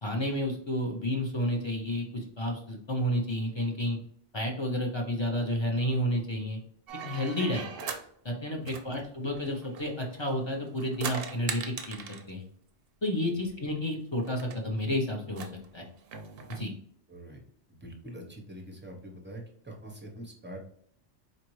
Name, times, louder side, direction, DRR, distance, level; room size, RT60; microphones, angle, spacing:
voice 1, 0.0-4.0 4.3-6.6 7.0-7.7 8.2-12.0 12.3-12.4 13.0-15.5 15.7-15.9 16.5-16.7, left 1 dB, 30° left, 1 dB, 0.5 m, -31 dB
sound 1, 6.9-8.1 8.7-10.3 10.7-12.3 13.5-13.6 13.8-13.9 14.3-14.6 15.3-16.7, right 6 dB, 65° right, 0.7 m, -40 dB
voice 2, 17.1-17.4 17.7-20.6, right 1 dB, 10° right, 1 dB, 0.6 m, -44 dB
4.2 x 2.6 x 3.0 m, 0.65 s
omnidirectional pair, 1.2 m